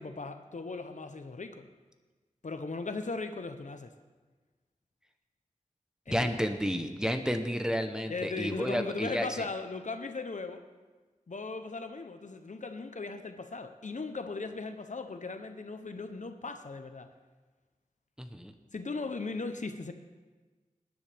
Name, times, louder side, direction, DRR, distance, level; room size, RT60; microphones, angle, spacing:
voice 1, 0.0-1.7 2.4-3.9 6.1-6.3 8.1-10.6 11.3-17.1 18.7-19.9, left 3 dB, 65° left, 8 dB, 0.8 m, -38 dB
voice 2, 6.1-9.3 18.2-18.5, equal, 5° right, 6 dB, 0.9 m, -31 dB
19.5 x 10.5 x 3.5 m, 1.3 s
wide cardioid pair, 75°, 14 cm